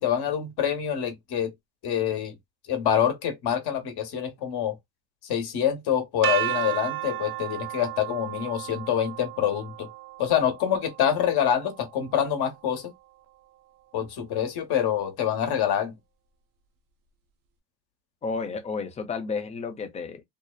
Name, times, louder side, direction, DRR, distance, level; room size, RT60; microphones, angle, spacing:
voice 1, 0.0-1.5 1.8-2.3 2.7-4.8 5.2-9.9 10.2-12.9 13.9-15.9, left 9 dB, 50° left, 1.1 m, -26 dB
sound 1, 6.2-12.2, right 13 dB, 45° right, 0.5 m, -33 dB
voice 2, 18.2-20.2, left 4 dB, 15° left, 0.5 m, -32 dB
2.8 x 2.1 x 2.3 m
supercardioid pair, 95°, 50 cm